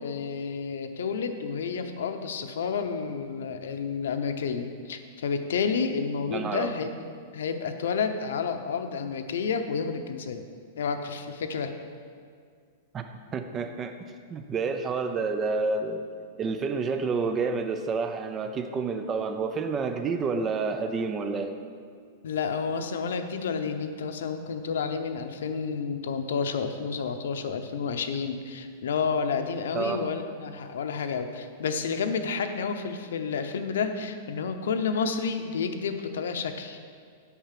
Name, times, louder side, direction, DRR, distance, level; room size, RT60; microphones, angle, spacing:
voice 1, 0.0-7.0 7.3-10.4 10.8-11.7 22.2-36.8, left 5 dB, 90° left, 7 dB, 0.8 m, -30 dB
voice 2, 6.3-6.7 12.9-13.9 14.3-16.0 16.4-21.5 29.7-30.0, right 4 dB, 15° right, 7 dB, 0.5 m, -29 dB
8.3 x 5.8 x 7.5 m, 2.1 s
supercardioid pair, 175°, 0 cm